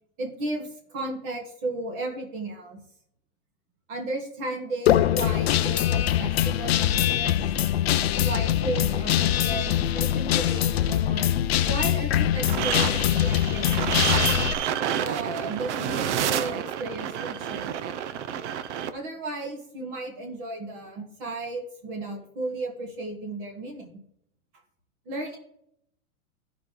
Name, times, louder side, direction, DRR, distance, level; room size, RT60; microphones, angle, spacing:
voice 1, 0.2-2.8 3.9-7.3 8.2-11.3 11.7-13.7 15.0-17.7 18.9-24.0 25.1-25.4, right 2 dB, 35° right, 1 dB, 1.7 m, -34 dB
Guitar, 4.9-14.5, left 11 dB, 45° left, 0.4 m, -23 dB
sound 1, 12.4-18.9, right 9 dB, 50° right, 0.7 m, -29 dB
14.5 x 5.0 x 3.7 m, 0.72 s
supercardioid pair, 170°, 44 cm